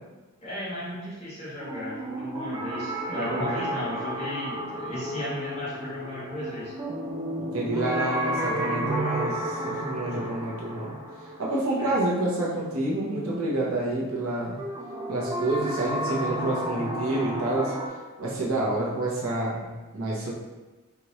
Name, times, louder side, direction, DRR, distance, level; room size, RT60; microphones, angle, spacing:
voice 1, 0.4-6.9 11.8-12.0, left 1 dB, 30° left, -9 dB, 1.4 m, -35 dB
sound 1, 1.6-12.5 14.6-17.9, right 1 dB, 15° right, 0.5 m, -32 dB
voice 2, 3.1-3.7 7.4-10.9 11.4-14.6 15.1-17.7 18.2-20.3, right 2 dB, 70° right, -5 dB, 1.0 m, -28 dB
4.5 x 2.5 x 3.0 m, 1.2 s
head